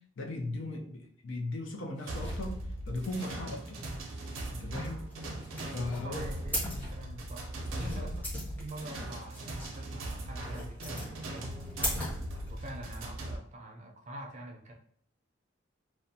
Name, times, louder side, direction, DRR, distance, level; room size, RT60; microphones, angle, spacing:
voice 1, 0.2-2.6 2.9-3.8 4.5-5.1 5.7-6.2 7.7-8.1, left 2 dB, 70° left, 2 dB, 0.5 m, -38 dB
Domestic sounds home sounds, 1.9-2.5 2.9-3.8 4.1-4.9 5.4-6.1 6.4-8.3 8.7-9.4 10.1-10.7, equal, 30° left, 1.1 m, -56 dB
sound 1, 2.1-13.4, right 1 dB, 90° right, 0.5 m, -39 dB
sound 2, 4.7-12.9, equal, 10° left, 0.8 m, -39 dB
voice 2, 6.0-7.5 7.8-8.2 8.6-12.1 12.5-14.7, right 1 dB, 35° right, 1 dB, 0.4 m, -45 dB
2.5 x 2.1 x 2.7 m, 0.63 s
head